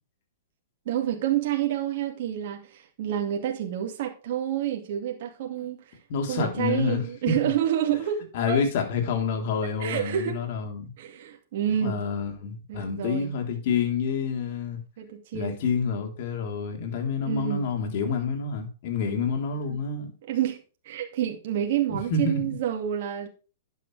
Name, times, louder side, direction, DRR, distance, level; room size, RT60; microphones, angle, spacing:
voice 1, 0.9-6.0 6.3-8.6 9.8-10.4 11.0-12.0 12.7-13.3 15.0-15.6 17.2-17.7 19.7-19.8 20.3-20.6 20.8-23.3, right 11 dB, 55° right, 2.2 m, -28 dB
voice 2, 6.1-7.4 8.3-10.9 11.8-14.8 15.3-20.1 21.9-22.4, left 5 dB, 55° left, 3.7 m, -28 dB
11.5 x 9.3 x 3.4 m
hypercardioid pair, 135°, 0 cm